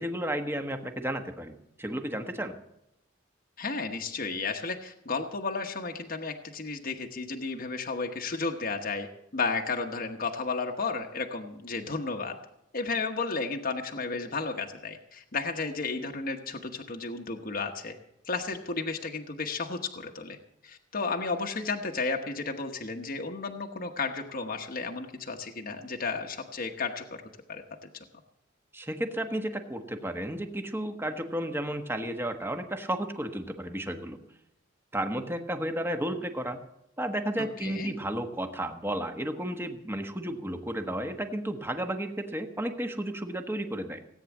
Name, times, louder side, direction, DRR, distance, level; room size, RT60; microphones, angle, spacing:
voice 1, 0.0-2.6 28.7-34.2 34.9-36.6 37.0-44.0, right 1 dB, 10° right, 6 dB, 1.3 m, -33 dB
voice 2, 3.6-9.1 9.3-12.4 12.7-17.9 18.2-20.4 20.6-27.0 27.5-27.6 37.4-37.9, left 4 dB, 45° left, 3 dB, 1.1 m, -33 dB
17.5 x 9.2 x 7.2 m, 0.83 s
head